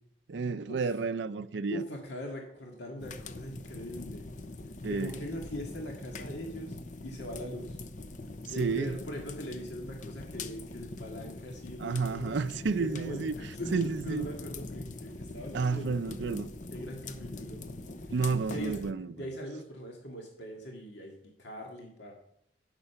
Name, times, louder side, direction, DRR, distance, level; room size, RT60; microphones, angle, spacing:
voice 1, 0.3-1.8 4.8-5.1 8.6-8.9 11.8-13.3 13.7-14.3 15.5-16.5 18.1-19.1, right 4 dB, 80° right, 0.5 m, -31 dB
voice 2, 1.7-4.3 4.9-6.8 7.0-7.8 8.5-12.4 12.8-16.2 16.7-17.7 18.5-18.9 19.1-21.1 21.4-22.1, equal, 70° left, 2.0 m, -41 dB
sound 1, 3.0-18.9, left 2 dB, 40° left, 0.7 m, -43 dB
10.5 x 8.9 x 5.7 m
head